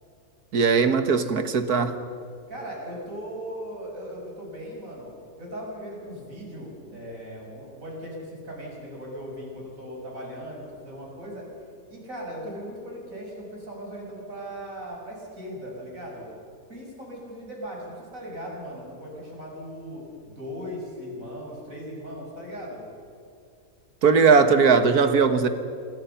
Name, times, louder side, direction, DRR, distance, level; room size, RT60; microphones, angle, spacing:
voice 1, 0.5-2.0 24.0-25.5, right 5 dB, 85° right, 9 dB, 1.9 m, -19 dB
voice 2, 2.5-5.1 5.4-11.4 11.9-16.3 16.7-22.9, equal, 60° right, -2 dB, 7.3 m, -38 dB
27.0 x 22.5 x 5.8 m, 2.5 s
omnidirectional pair, 1.6 m